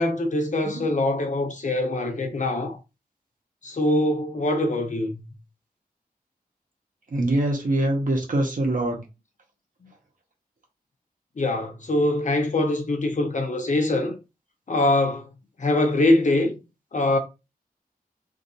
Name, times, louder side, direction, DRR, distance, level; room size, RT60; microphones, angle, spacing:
voice 1, 0.0-2.8 3.6-5.2 11.4-14.1 14.7-15.3 15.6-16.6 16.9-17.2, left 2 dB, 50° left, 0.9 m, -23 dB
voice 2, 7.1-9.0, right 1 dB, 60° right, 1.2 m, -24 dB
3.6 x 2.6 x 2.6 m
wide cardioid pair, 70°, 16 cm